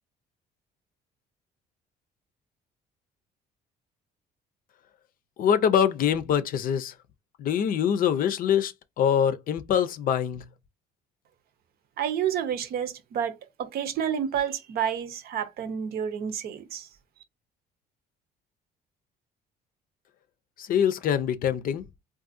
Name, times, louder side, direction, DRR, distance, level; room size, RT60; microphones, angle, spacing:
voice 1, 5.4-6.9 7.4-10.4 20.6-21.8, left 8 dB, 55° left, 0.5 m, -24 dB
voice 2, 12.0-16.9, right 8 dB, 65° right, 0.7 m, -30 dB
3.7 x 2.6 x 2.6 m
cardioid pair, 110°, 17 cm